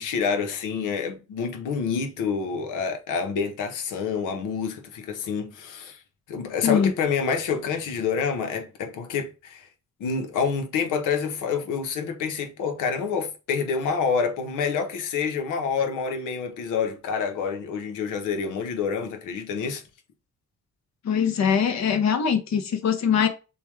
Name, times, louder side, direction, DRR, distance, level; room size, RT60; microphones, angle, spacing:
voice 1, 0.0-6.0 6.3-9.7 10.0-19.8, left 6 dB, 90° left, 1.1 m, -27 dB
voice 2, 21.0-23.3, left 7 dB, 65° left, 1.1 m, -22 dB
6.9 x 2.4 x 3.2 m
cardioid pair, 90°, 30 cm